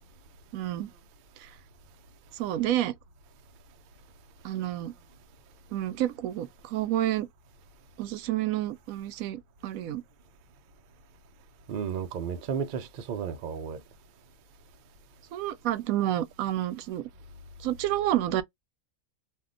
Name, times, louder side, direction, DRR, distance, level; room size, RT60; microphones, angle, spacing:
voice 1, 0.5-0.9 1.4-1.5 2.3-3.0 4.4-4.9 5.7-7.3 8.0-10.0 15.3-17.1 17.6-18.4, right 13 dB, 85° right, 1.0 m, -29 dB
voice 2, 11.7-13.8, right 7 dB, 60° right, 0.5 m, -33 dB
2.6 x 2.1 x 3.7 m
omnidirectional pair, 1.4 m